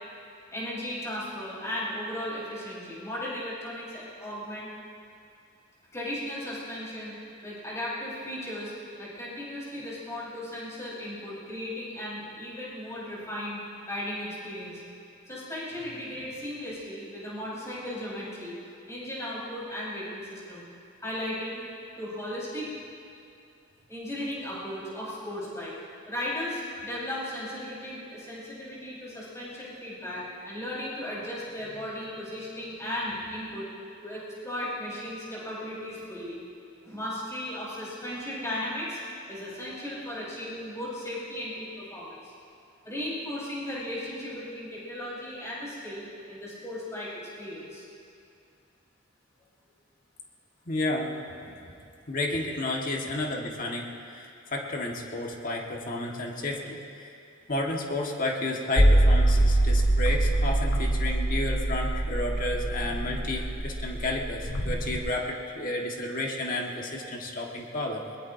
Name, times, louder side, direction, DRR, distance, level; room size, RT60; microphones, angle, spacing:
voice 1, 0.5-4.7 5.9-7.1 7.4-8.7 9.0-13.6 13.9-14.8 15.3-18.6 18.9-20.7 21.0-21.6 21.9-22.7 23.9-25.7 26.1-33.7 34.0-36.4 36.8-39.0 39.3-42.3 42.8-47.8 52.3-52.5, left 1 dB, 15° left, -8 dB, 5.0 m, -36 dB
voice 2, 50.7-51.8 52.1-57.1 57.5-68.2, left 2 dB, 45° left, -1 dB, 1.7 m, -32 dB
sound 1, 58.8-65.0, right 1 dB, 85° left, 1.8 m, -24 dB
21.5 x 21.5 x 2.8 m, 2.5 s
head